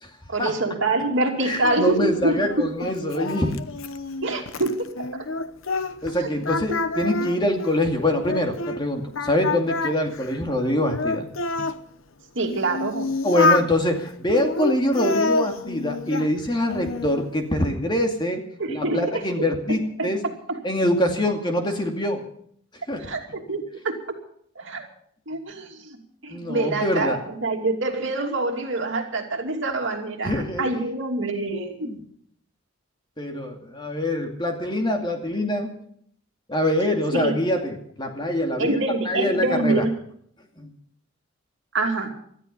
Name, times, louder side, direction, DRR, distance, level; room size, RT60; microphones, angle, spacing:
voice 1, 0.3-2.7 4.2-5.3 6.2-6.3 6.8-6.9 7.2-7.3 12.3-13.1 18.6-19.2 19.7-20.6 23.0-23.9 24.6-24.8 25.3-31.9 33.4-33.5 37.1-37.4 38.6-39.9 41.7-42.1, right 2 dB, 60° right, 3 dB, 2.8 m, -26 dB
voice 2, 1.4-3.6 6.0-11.3 13.2-18.4 18.7-20.2 20.6-22.2 22.9-23.1 26.3-27.2 30.2-30.7 31.8-32.0 33.2-35.7 36.5-38.8 39.1-39.8 40.6-40.7, left 1 dB, 20° left, 3 dB, 2.4 m, -24 dB
Singing, 1.6-6.1 6.4-8.8 9.2-11.8 12.4-13.7 14.3-16.3 16.7-17.3, left 3 dB, 75° left, 1.0 m, -28 dB
19.0 x 13.5 x 5.4 m, 0.64 s
head